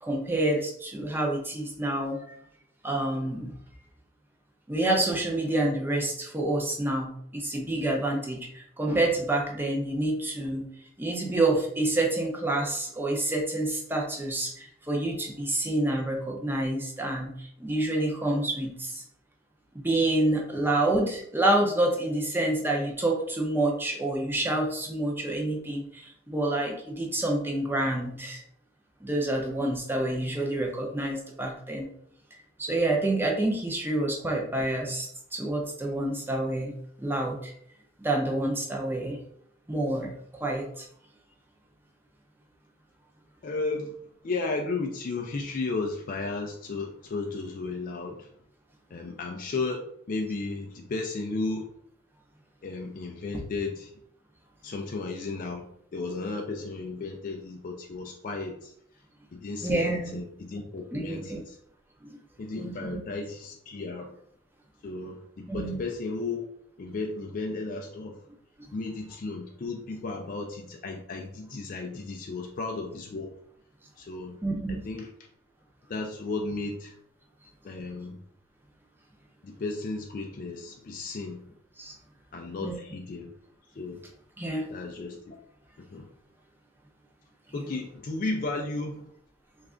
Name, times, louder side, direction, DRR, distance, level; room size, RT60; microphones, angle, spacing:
voice 1, 0.0-2.4 2.8-3.5 4.7-10.6 11.0-19.0 19.7-28.4 29.0-31.9 32.6-36.7 37.0-37.5 38.0-39.2 39.7-40.9 59.6-60.2 60.9-61.4 62.6-63.0 65.5-65.8 74.4-74.8 81.8-81.9 82.6-82.8 84.4-84.7, right 1 dB, 10° right, 0 dB, 0.6 m, -28 dB
voice 2, 43.4-44.0 44.2-48.3 48.9-51.7 52.6-53.9 54.6-55.6 55.9-58.7 59.3-61.6 62.4-64.1 64.8-66.5 66.8-68.2 68.7-73.3 74.0-74.4 74.7-75.1 75.9-77.0 77.6-78.2 79.4-81.4 82.3-83.3 83.7-84.0 84.7-85.4 85.9-86.1 87.5-89.1, left 3 dB, 40° left, 2 dB, 0.3 m, -34 dB
3.3 x 2.4 x 3.6 m, 0.69 s
head